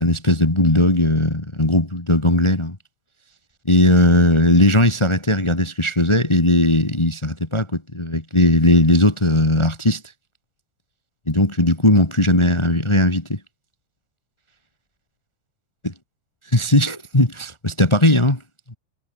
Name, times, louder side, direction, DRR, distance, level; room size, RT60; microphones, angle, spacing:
voice 1, 0.0-2.7 3.7-10.0 11.3-13.4 16.5-18.4, left 1 dB, 10° left, 1.4 m, -17 dB
omnidirectional pair, 3.5 m